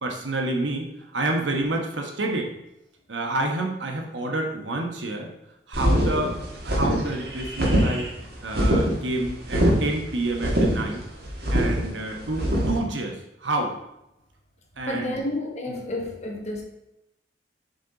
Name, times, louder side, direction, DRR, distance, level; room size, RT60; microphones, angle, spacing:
voice 1, 0.0-2.5 3.1-5.3 5.7-8.1 8.4-11.0 11.5-13.7 14.8-15.2 15.7-15.8, right 2 dB, 85° right, 2 dB, 1.1 m, -29 dB
sound 1, 5.7-12.8, equal, 55° right, 1.6 m, -23 dB
voice 2, 14.9-16.6, left 1 dB, 40° left, 1 dB, 1.1 m, -30 dB
6.8 x 4.3 x 3.9 m, 0.86 s
head